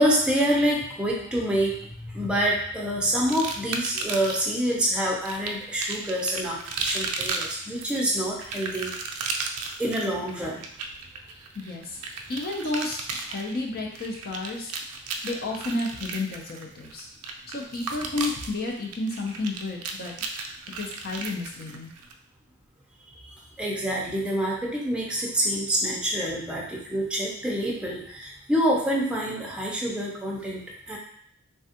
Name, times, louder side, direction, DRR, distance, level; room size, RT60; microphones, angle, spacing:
voice 1, 0.0-9.4 9.8-10.7 23.1-31.0, equal, 5° right, -3 dB, 0.5 m, -27 dB
sound 1, 3.3-4.6 5.3-22.1, right 4 dB, 80° right, 0.4 m, -34 dB
voice 2, 11.6-12.0 12.3-14.7 15.2-17.1 17.5-20.1 20.8-21.9, left 2 dB, 45° left, 0 dB, 0.5 m, -31 dB
3.3 x 2.3 x 2.8 m, 0.63 s
head